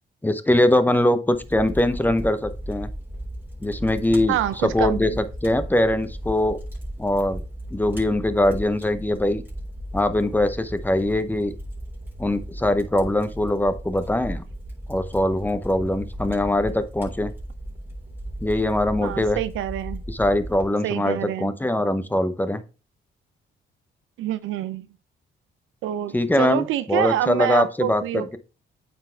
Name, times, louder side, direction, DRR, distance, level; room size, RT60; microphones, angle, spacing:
voice 1, 0.2-2.9 3.6-4.4 4.7-5.1 5.4-6.6 7.0-7.4 7.7-9.4 9.9-11.5 12.2-14.4 14.9-17.3 18.4-19.4 20.1-22.6 26.1-28.4, left 1 dB, 10° left, 0.7 m, -22 dB
Fire, 1.3-20.6, equal, 10° right, 3.6 m, -36 dB
voice 2, 4.3-5.3 19.0-20.0 20.8-21.5 24.2-24.9 25.8-28.4, right 12 dB, 85° right, 0.6 m, -27 dB
8.8 x 4.3 x 3.3 m
cardioid pair, 90°, 20 cm